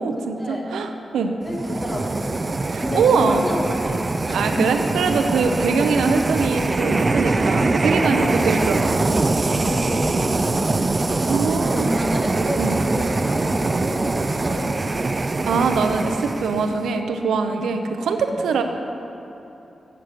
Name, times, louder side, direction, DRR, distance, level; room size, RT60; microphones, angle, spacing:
voice 1, 0.0-1.3 2.7-3.5 4.3-9.1 11.3-11.9 12.6-12.8 15.4-18.6, right 5 dB, 90° right, 6 dB, 0.5 m, -22 dB
voice 2, 1.2-2.3 2.8-4.0 4.3-4.8 5.4-5.7 8.0-8.5 9.4-10.8 11.1-11.2 11.7-15.2 17.5-17.7 18.3-18.5, left 1 dB, 25° left, -2 dB, 2.0 m, -30 dB
sound 1, 1.5-16.9, right 3 dB, 40° right, 0.4 m, -23 dB
7.5 x 6.7 x 7.7 m, 2.9 s
cardioid pair, 45°, 0 cm